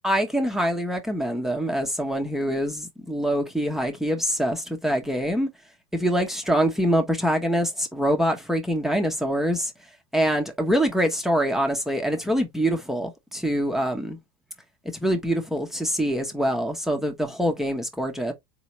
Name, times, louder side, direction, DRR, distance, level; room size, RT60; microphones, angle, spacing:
voice 1, 0.0-5.5 5.9-9.7 10.1-14.2 15.0-18.3, equal, 5° right, 0.8 m, -24 dB
4.2 x 2.8 x 3.0 m
supercardioid pair, 125°, 14 cm